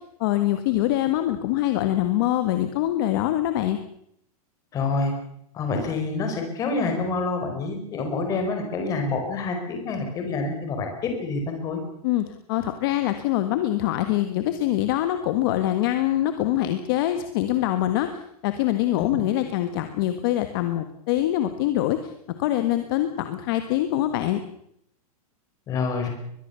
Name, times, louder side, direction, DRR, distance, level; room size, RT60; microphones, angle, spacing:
voice 1, 0.0-3.8 12.0-22.1 22.4-24.4, left 13 dB, 35° left, 8 dB, 1.6 m, -24 dB
voice 2, 4.7-5.1 5.5-11.8 19.0-19.2 25.7-26.1, left 3 dB, 15° left, 4 dB, 4.8 m, -27 dB
22.5 x 21.5 x 7.0 m, 0.72 s
supercardioid pair, 175°, 20 cm